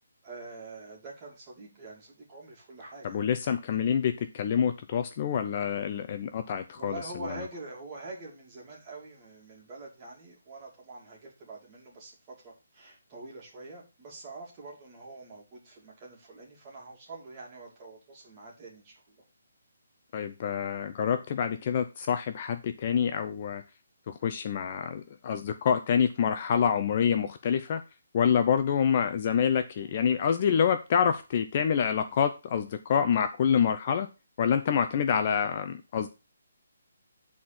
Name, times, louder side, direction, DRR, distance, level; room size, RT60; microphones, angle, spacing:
voice 1, 0.2-3.2 6.7-19.2, right 3 dB, 20° right, -3 dB, 2.6 m, -45 dB
voice 2, 3.0-7.0 20.1-23.6 24.1-27.8 28.1-34.1 34.4-36.1, left 7 dB, 30° left, 8 dB, 0.5 m, -27 dB
9.8 x 4.3 x 5.9 m, 0.28 s
hypercardioid pair, 170°, 0 cm